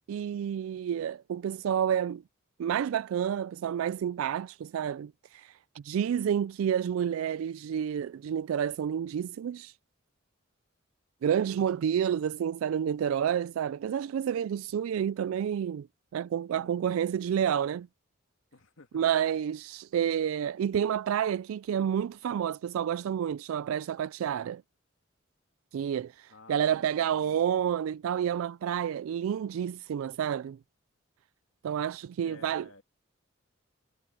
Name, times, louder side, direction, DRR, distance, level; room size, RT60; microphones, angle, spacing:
voice 1, 0.1-2.2 2.6-9.7 11.2-15.9 16.1-17.9 18.9-24.6 25.7-30.6 31.6-32.7, right 9 dB, 85° right, 0.3 m, -29 dB
voice 2, 16.5-17.0 18.5-19.0 26.3-27.4 32.2-32.8, left 3 dB, 85° left, 2.3 m, -54 dB
head